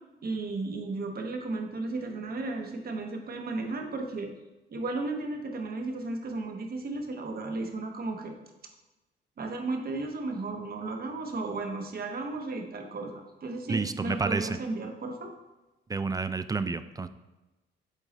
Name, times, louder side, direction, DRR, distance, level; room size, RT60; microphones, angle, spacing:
voice 1, 0.2-4.3 4.7-8.3 9.4-15.3, right 3 dB, 50° right, 4 dB, 1.1 m, -34 dB
voice 2, 13.7-14.6 15.9-17.1, right 4 dB, 20° right, 12 dB, 0.3 m, -30 dB
8.1 x 3.9 x 4.1 m, 1.1 s
cardioid pair, 90°, 20 cm